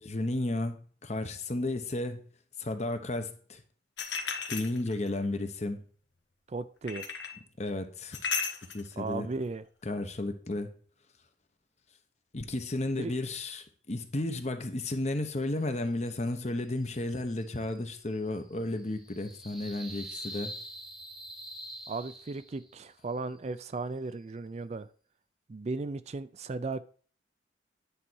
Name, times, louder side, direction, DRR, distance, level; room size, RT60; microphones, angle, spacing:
voice 1, 0.0-2.2 2.6-3.6 4.5-5.8 7.6-8.2 8.7-9.3 9.8-10.7 12.3-20.5, left 2 dB, 40° left, 1.0 m, -33 dB
sound 1, 4.0-5.2 6.9-7.4 8.1-8.9, left 6 dB, 75° left, 1.3 m, -34 dB
voice 2, 6.5-7.1 9.0-9.6 13.0-13.1 21.9-24.9 25.5-26.8, right 3 dB, 35° right, 0.4 m, -36 dB
sound 2, 16.8-22.8, right 1 dB, 5° right, 0.9 m, -46 dB
10.0 x 4.1 x 6.2 m
head